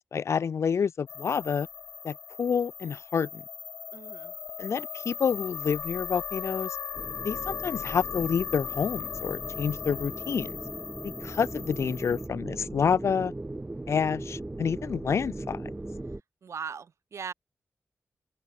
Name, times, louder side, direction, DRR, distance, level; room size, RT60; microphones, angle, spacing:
voice 1, 0.0-1.7 2.0-3.4 4.6-6.8 7.2-10.6 11.0-13.3 13.9-15.7, left 6 dB, 70° left, 0.6 m, -28 dB
sound 1, 1.1-12.3, left 7 dB, 85° left, 1.0 m, -38 dB
voice 2, 3.9-4.3 16.4-17.3, right 6 dB, 75° right, 4.7 m, -39 dB
sound 2, 6.9-16.2, right 2 dB, 20° right, 3.2 m, -39 dB
wide cardioid pair, 80°, 5 cm